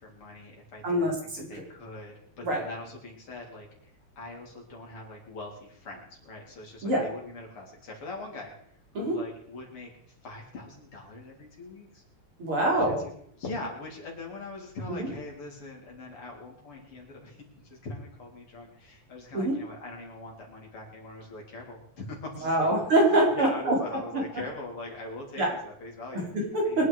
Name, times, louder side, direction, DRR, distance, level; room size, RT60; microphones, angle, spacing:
voice 1, 0.0-1.1 1.5-3.7 4.2-8.5 9.0-9.9 10.2-12.0 12.7-13.1 13.4-22.8 23.1-26.3 26.6-26.8, left 2 dB, 85° left, -1 dB, 4.7 m, -42 dB
voice 2, 0.8-1.5 2.4-2.6 6.8-7.1 9.0-9.2 12.4-13.0 14.9-15.1 19.3-19.6 22.4-23.8 25.4-25.5 26.1-26.9, right 1 dB, 80° right, -1 dB, 5.4 m, -25 dB
24.5 x 9.9 x 4.9 m, 0.68 s
omnidirectional pair, 2.4 m